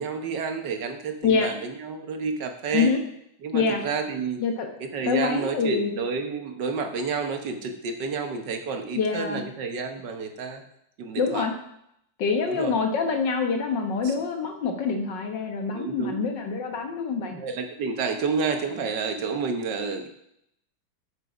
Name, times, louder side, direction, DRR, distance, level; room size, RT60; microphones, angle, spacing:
voice 1, 0.0-2.9 3.4-4.4 4.8-10.6 11.0-11.5 12.4-12.8 14.0-14.1 15.7-16.2 17.3-20.1, right 5 dB, 70° right, 5 dB, 1.7 m, -30 dB
voice 2, 4.4-4.7 5.1-5.9 9.0-9.4 11.2-11.5 12.2-17.4, left 5 dB, 70° left, 4 dB, 1.9 m, -25 dB
9.4 x 6.8 x 5.0 m, 0.75 s
omnidirectional pair, 2.0 m